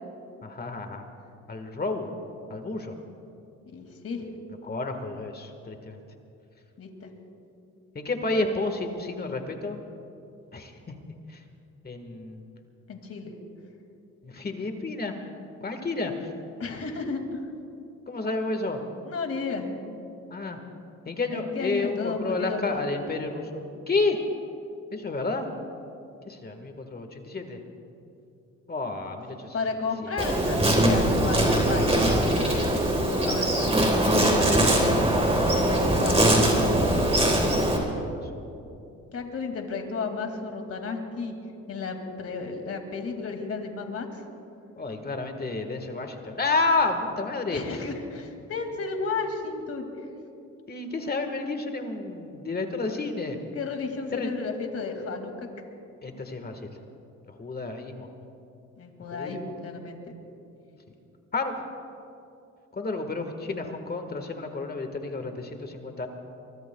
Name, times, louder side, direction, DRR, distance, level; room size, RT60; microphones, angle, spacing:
voice 1, 0.4-1.1 1.5-2.1 2.5-2.9 4.6-6.0 7.9-9.8 10.5-10.7 11.3-11.4 11.8-12.4 14.2-15.1 15.6-16.1 18.1-18.8 20.3-20.6 21.0-24.2 24.9-25.5 26.3-27.6 28.7-29.5 37.8-38.2 44.8-47.6 50.7-53.4 54.1-54.3 56.0-56.7 57.3-58.1 59.1-59.4 61.3-61.6 62.7-66.1, left 3 dB, 30° left, 5 dB, 1.6 m, -30 dB
voice 2, 3.6-4.3 6.8-7.1 12.9-13.4 16.6-17.4 19.0-19.8 21.3-22.9 29.5-33.6 34.6-35.1 35.4-36.8 39.1-41.3 41.7-44.2 47.5-49.9 53.5-55.5 58.8-60.1, left 4 dB, 50° left, 4 dB, 2.4 m, -33 dB
Insect, 30.2-37.8, right 1 dB, 20° right, 3.8 m, -22 dB
23.5 x 23.5 x 2.3 m, 2.7 s
cardioid pair, 90°, 30 cm